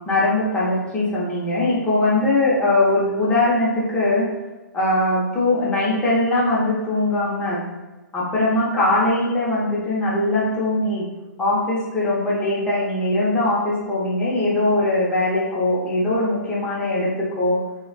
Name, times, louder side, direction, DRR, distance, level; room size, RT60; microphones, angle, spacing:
voice 1, 0.1-4.3 4.7-7.6 8.1-11.0 11.4-17.6, left 2 dB, 10° left, -8 dB, 0.6 m, -21 dB
2.4 x 2.1 x 2.5 m, 1.1 s
hypercardioid pair, 135°, 10 cm